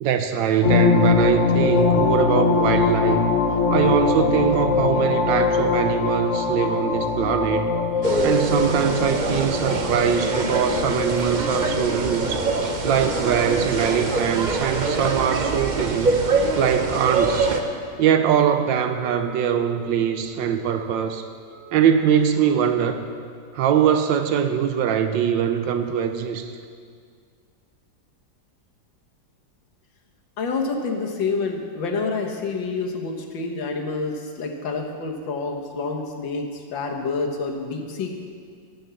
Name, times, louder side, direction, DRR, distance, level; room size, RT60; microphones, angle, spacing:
voice 1, 0.0-3.2 3.7-7.7 8.2-12.4 12.8-16.2 16.6-17.5 18.0-21.3 21.7-23.0 23.5-26.5, right 8 dB, 80° right, 8 dB, 1.4 m, -22 dB
sound 1, 0.6-12.8, left 5 dB, 55° left, 0.9 m, -22 dB
sound 2, 8.0-17.6, right 3 dB, 40° right, 0.6 m, -24 dB
Wind instrument woodwind instrument, 18.8-22.9, right 2 dB, 65° right, 2.0 m, -46 dB
voice 2, 30.4-38.1, left 4 dB, 85° left, 2 dB, 2.1 m, -28 dB
18.5 x 6.4 x 6.9 m, 2.1 s
omnidirectional pair, 2.0 m